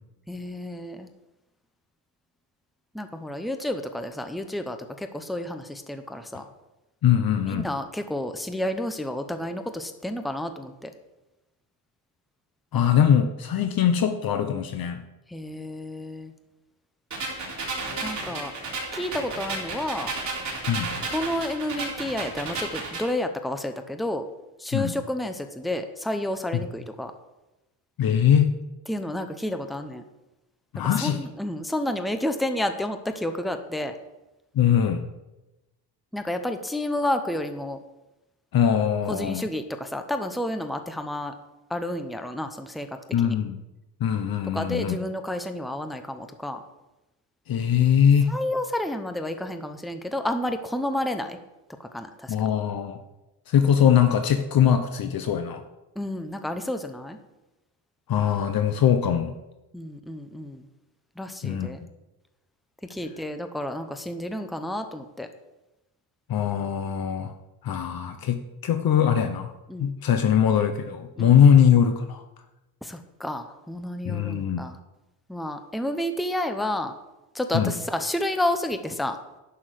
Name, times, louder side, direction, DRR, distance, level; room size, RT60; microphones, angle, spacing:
voice 1, 0.3-1.1 2.9-6.4 7.5-10.9 15.3-16.3 18.0-18.5 18.9-20.1 21.1-24.2 24.6-27.1 28.9-30.0 31.0-33.9 36.1-37.8 39.1-41.3 41.7-42.9 43.2-43.3 44.5-46.6 48.3-51.4 51.8-52.3 56.0-57.2 59.7-60.7 61.2-61.8 62.9-65.3 69.7-69.9 71.2-71.3 72.8-74.8 75.3-76.9 77.3-79.2, left 1 dB, ahead, 7 dB, 0.7 m, -30 dB
voice 2, 7.0-7.7 12.7-15.0 20.7-20.9 24.7-24.9 28.0-28.5 30.7-31.2 34.5-35.0 38.5-39.4 43.1-43.6 44.0-45.0 47.5-48.4 52.3-53.0 53.5-55.6 58.1-59.4 61.4-61.7 66.3-67.3 67.6-69.5 69.8-72.2 74.0-74.6 77.5-77.7, left 8 dB, 60° left, 7 dB, 0.9 m, -21 dB
sound 1, 17.1-23.1, right 3 dB, 45° right, 3.8 m, -33 dB
11.5 x 6.1 x 7.6 m, 1.0 s
cardioid pair, 145°, 41 cm